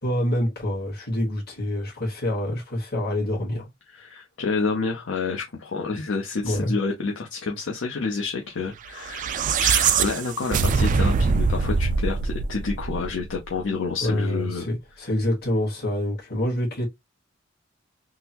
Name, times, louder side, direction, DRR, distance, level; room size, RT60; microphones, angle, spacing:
voice 1, 0.0-3.7 6.4-6.7 14.0-16.9, left 1 dB, 55° left, 1.6 m, -26 dB
voice 2, 3.9-14.7, left 4 dB, 70° left, 0.6 m, -29 dB
sound 1, 9.0-13.4, right 5 dB, 40° right, 0.3 m, -23 dB
3.7 x 2.0 x 2.8 m
head